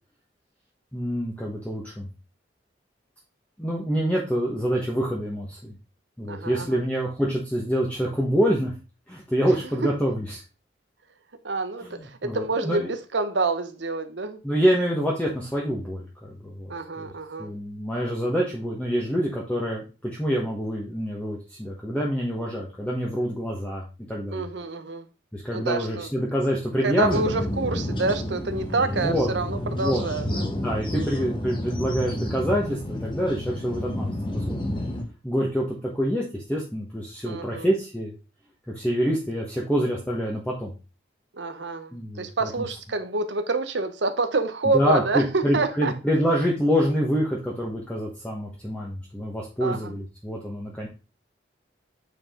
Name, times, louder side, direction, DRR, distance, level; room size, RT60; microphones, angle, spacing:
voice 1, 0.9-2.1 3.6-5.7 6.2-8.7 9.1-10.4 11.8-12.9 14.4-17.1 17.4-24.4 25.3-27.3 28.9-29.3 29.6-34.8 35.2-38.1 38.7-40.7 41.9-42.5 44.7-50.9, equal, 10° left, 1.2 m, -26 dB
voice 2, 6.3-6.8 9.8-9.9 11.4-14.4 16.7-17.5 24.3-25.1 25.5-26.1 26.8-30.5 30.9-31.2 37.2-37.7 41.3-45.9 49.6-49.9, right 3 dB, 85° right, 1.0 m, -27 dB
sound 1, 27.0-35.0, left 1 dB, 25° left, 1.4 m, -30 dB
8.6 x 4.8 x 3.7 m
head